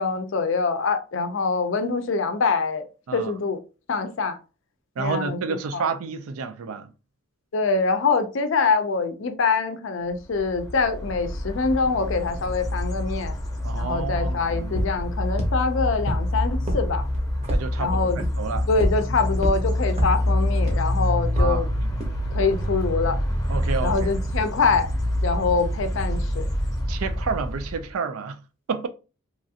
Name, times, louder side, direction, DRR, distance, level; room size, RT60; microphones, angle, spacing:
voice 1, 0.0-2.9 3.1-3.6 3.9-4.4 5.0-5.9 7.5-13.4 13.8-17.0 17.8-18.2 18.7-21.7 22.3-23.2 23.8-24.9 25.2-26.4, left 4 dB, 60° left, 0.4 m, -24 dB
voice 2, 5.0-6.9 13.6-14.8 17.5-18.7 21.4-21.9 23.5-24.1 26.9-28.4 28.7-28.9, right 5 dB, 85° right, 0.4 m, -30 dB
sound 1, 10.3-27.9, left 1 dB, 15° left, 0.7 m, -26 dB
pasos zapatos, 14.8-14.9 15.4-15.5 16.1-16.2 16.7-16.8 17.1-17.6 18.2-18.3 18.8-18.9 19.4-19.5 20.0-20.1 20.7-20.8 21.4-21.5 22.0-22.1, equal, 30° right, 0.7 m, -23 dB
2.9 x 2.4 x 2.7 m
head